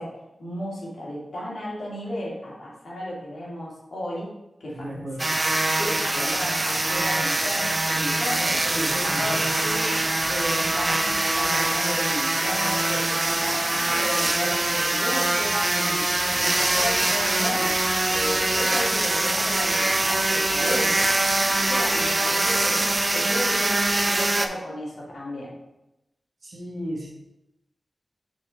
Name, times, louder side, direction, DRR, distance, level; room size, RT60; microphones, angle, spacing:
voice 1, 0.0-4.3 4.6-5.0 5.8-8.6 9.2-10.0 10.3-17.8 18.0-21.1 21.4-23.7 24.0-25.5, left 1 dB, 75° left, -6 dB, 2.2 m, -34 dB
voice 2, 4.7-5.3 8.6-9.5 26.4-27.1, equal, 55° right, -1 dB, 1.5 m, -34 dB
sound 1, 5.2-24.5, right 2 dB, 35° right, 0.5 m, -23 dB
5.3 x 4.2 x 4.4 m, 0.92 s
cardioid pair, 45°, 0 cm